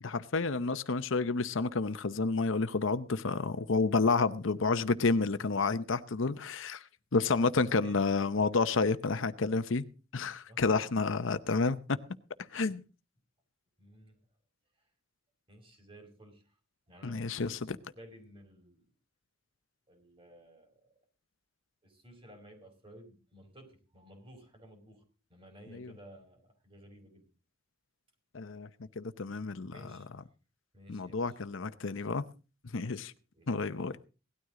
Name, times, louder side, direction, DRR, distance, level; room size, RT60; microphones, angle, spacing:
voice 1, 0.0-6.8 7.1-9.8 10.1-12.0 12.5-12.8 17.0-17.8 25.7-25.9 28.3-28.7 29.0-29.8 30.9-32.2 32.7-33.1 33.5-33.9, left 4 dB, 65° left, 12 dB, 0.8 m, -30 dB
voice 2, 7.6-9.6 10.5-10.8 13.8-14.2 15.5-16.4 16.9-18.9 19.9-20.9 21.8-25.0 25.3-27.3 29.7-30.1 30.7-31.4 32.7-33.0 33.3-33.5, equal, 25° right, 4 dB, 5.0 m, -55 dB
18.0 x 12.5 x 3.8 m, 0.34 s
head